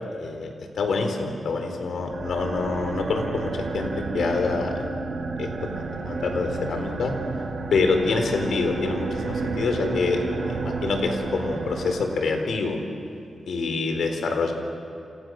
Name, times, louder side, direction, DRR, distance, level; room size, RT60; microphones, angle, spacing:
voice 1, 0.2-0.5 0.8-4.8 5.4-5.5 6.0-7.1 7.7-12.8 13.5-14.5, left 4 dB, 75° left, 5 dB, 4.0 m, -26 dB
sound 1, 2.0-12.5, right 4 dB, 65° right, 3.6 m, -31 dB
28.5 x 28.5 x 6.5 m, 2.5 s
cardioid pair, 80°, 0 cm